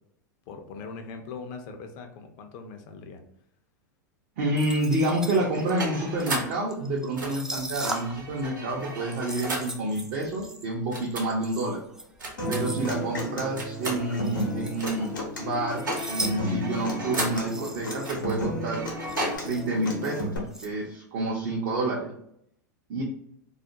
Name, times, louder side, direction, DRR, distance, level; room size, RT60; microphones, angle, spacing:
voice 1, 0.5-3.2 12.6-13.0, left 4 dB, 50° left, 5 dB, 0.5 m, -41 dB
voice 2, 4.4-11.8 12.5-18.9 19.4-20.3 20.6-22.1 22.9-23.0, right 2 dB, 55° right, -3 dB, 0.6 m, -28 dB
sound 1, 4.6-8.4 8.7-12.9 13.7-15.2 15.5-16.4 16.6-16.7 17.2-18.2 18.6-18.7 18.8-20.7, right 1 dB, 5° right, 0.3 m, -39 dB
sound 2, 5.4-6.6 7.2-9.8 10.9-11.3 12.2-12.9 13.6-14.0 14.8-15.2 15.4-17.5 18.0-19.4, right 2 dB, 90° right, 0.9 m, -35 dB
Human voice / Acoustic guitar, 12.4-20.4, left 1 dB, 90° left, 0.8 m, -33 dB
2.4 x 2.1 x 2.8 m, 0.72 s
hypercardioid pair, 95°, 10 cm